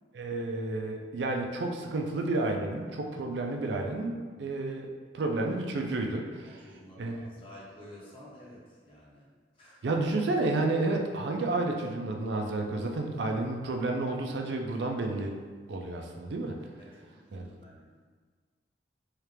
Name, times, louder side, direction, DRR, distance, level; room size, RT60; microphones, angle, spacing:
voice 1, 0.1-4.9 5.1-6.6 7.0-7.3 9.8-15.4 15.7-16.6 17.3-17.5, right 2 dB, 70° right, 2 dB, 0.4 m, -31 dB
voice 2, 6.4-9.3 9.5-9.9 16.8-18.0, left 1 dB, 30° left, -7 dB, 1.0 m, -51 dB
4.3 x 2.4 x 3.3 m, 1.5 s
head